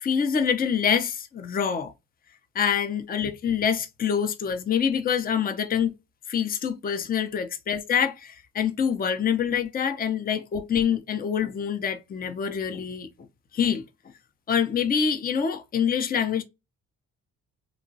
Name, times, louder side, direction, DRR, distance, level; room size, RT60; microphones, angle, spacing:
voice 1, 0.0-1.9 2.5-5.9 6.3-13.1 13.5-13.8 14.5-16.4, left 7 dB, 30° left, 0.5 m, -25 dB
3.0 x 2.2 x 2.6 m
cardioid pair, 90°, 30 cm